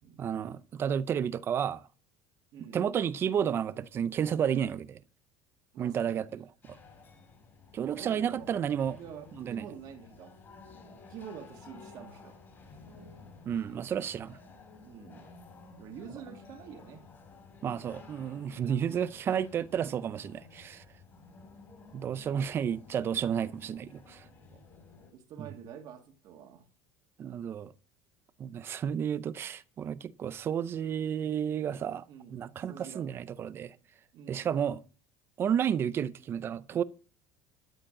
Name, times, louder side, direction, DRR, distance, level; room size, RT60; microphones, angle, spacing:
voice 1, 0.2-1.9 2.7-5.0 5.8-6.8 7.7-9.0 9.4-9.6 13.5-14.4 17.6-20.8 21.9-24.3 25.4-25.5 27.2-27.7 28.4-33.8 34.3-34.8 35.4-36.8, right 8 dB, 30° right, 0.5 m, -31 dB
voice 2, 2.5-2.8 5.7-6.3 8.0-8.5 8.9-10.4 11.1-12.4 14.8-15.3 15.8-17.1 24.5-24.6 25.1-26.7 32.1-33.1 34.1-34.5, right 7 dB, 45° right, 2.1 m, -47 dB
sound 1, 6.6-25.1, left 4 dB, 25° left, 3.6 m, -53 dB
12.5 x 5.1 x 7.7 m
cardioid pair, 160°, 8 cm